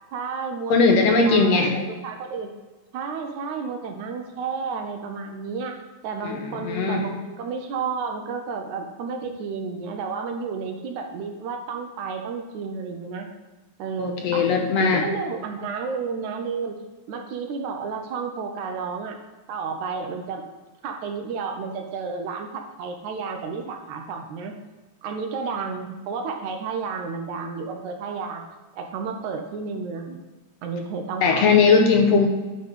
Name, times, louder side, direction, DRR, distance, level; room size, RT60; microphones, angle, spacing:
voice 1, 0.1-2.5 2.9-13.3 13.8-14.5 14.8-16.8 17.1-19.2 19.5-20.4 20.8-24.5 25.0-28.4 28.7-30.2 30.6-31.5, right 5 dB, 75° right, 4 dB, 2.0 m, -31 dB
voice 2, 0.7-1.8 6.2-7.0 14.0-15.0 31.2-32.3, left 4 dB, 70° left, 3 dB, 1.6 m, -19 dB
9.7 x 3.8 x 5.4 m, 1.2 s
omnidirectional pair, 3.6 m